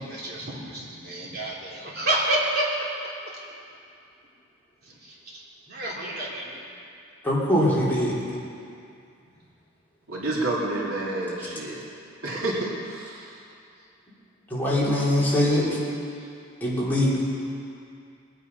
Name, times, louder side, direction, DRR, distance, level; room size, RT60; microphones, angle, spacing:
voice 1, 0.0-2.9 4.8-6.6 10.3-10.4 16.2-16.3, right 1 dB, 50° right, -5 dB, 3.5 m, -30 dB
voice 2, 7.2-8.2 14.5-15.7 16.6-17.2, left 1 dB, 10° left, -8 dB, 3.5 m, -22 dB
voice 3, 10.1-11.9 12.2-13.4, right 2 dB, 80° right, -4 dB, 2.9 m, -29 dB
22.0 x 9.4 x 5.5 m, 2.5 s
head